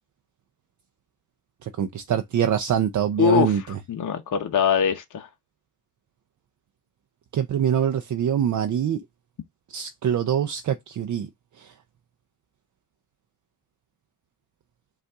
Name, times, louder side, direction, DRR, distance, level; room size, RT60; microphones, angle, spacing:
voice 1, 1.6-3.6 7.3-9.0 9.7-11.3 11.6-11.7, right 9 dB, 50° right, 0.5 m, -24 dB
voice 2, 3.2-5.3, left 7 dB, 55° left, 0.8 m, -23 dB
5.3 x 2.5 x 3.5 m
cardioid pair, 105°, 37 cm